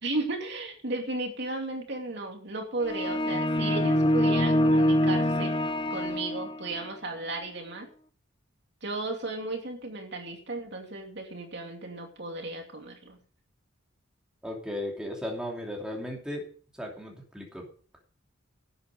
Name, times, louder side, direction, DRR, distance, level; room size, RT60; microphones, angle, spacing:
voice 1, 0.0-5.6 5.9-7.9 8.8-13.2, right 2 dB, 55° right, 2 dB, 2.6 m, -35 dB
sound 1, 2.8-6.8, left 1 dB, 25° left, 0.7 m, -25 dB
voice 2, 14.4-16.4 16.8-17.7, left 1 dB, 5° right, -1 dB, 2.8 m, -36 dB
12.0 x 9.6 x 5.1 m, 0.43 s
head